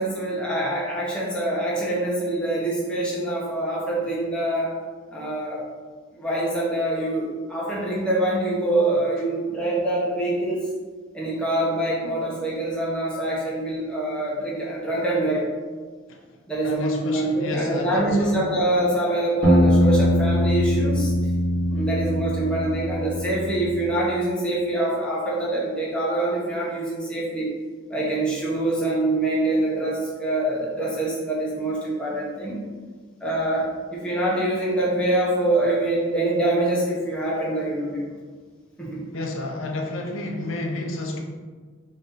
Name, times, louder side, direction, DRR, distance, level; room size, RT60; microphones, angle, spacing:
voice 1, 0.0-4.7 5.1-5.6 6.1-10.7 11.1-15.5 16.5-21.1 21.7-27.5 27.9-32.6 33.2-38.0 38.8-39.0, right 1 dB, 5° left, -7 dB, 0.9 m, -25 dB
voice 2, 16.6-18.4 39.1-41.2, left 2 dB, 65° left, 1 dB, 0.5 m, -30 dB
sound 1, 19.4-24.1, left 1 dB, 50° right, 1.4 m, -22 dB
3.9 x 3.0 x 3.8 m, 1.5 s
head